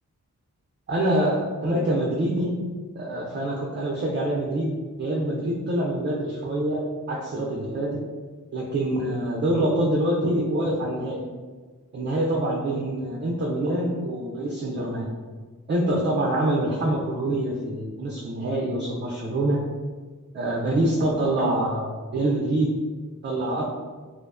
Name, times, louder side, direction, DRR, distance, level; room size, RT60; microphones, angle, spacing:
voice 1, 0.9-2.6 3.0-8.0 8.5-11.2 11.9-15.1 15.7-19.6 20.3-22.7 23.2-23.6, right 1 dB, 35° right, -3 dB, 0.4 m, -25 dB
2.4 x 2.1 x 2.4 m, 1.4 s
cardioid pair, 60°, 32 cm